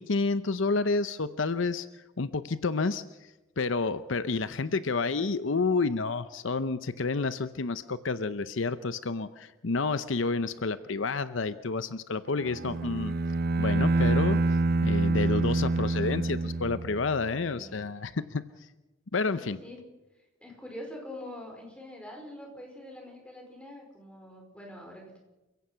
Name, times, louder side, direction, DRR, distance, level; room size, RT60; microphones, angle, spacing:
voice 1, 0.0-1.9 2.2-3.0 3.6-13.2 13.6-18.4 19.1-19.6, left 4 dB, 75° left, 13 dB, 0.7 m, -29 dB
Bowed string instrument, 12.4-17.2, right 3 dB, 50° right, 0.6 m, -26 dB
voice 2, 17.5-17.8 19.3-19.8 20.1-25.2, left 1 dB, 5° left, 1 dB, 5.0 m, -44 dB
28.5 x 16.5 x 5.8 m, 1.1 s
head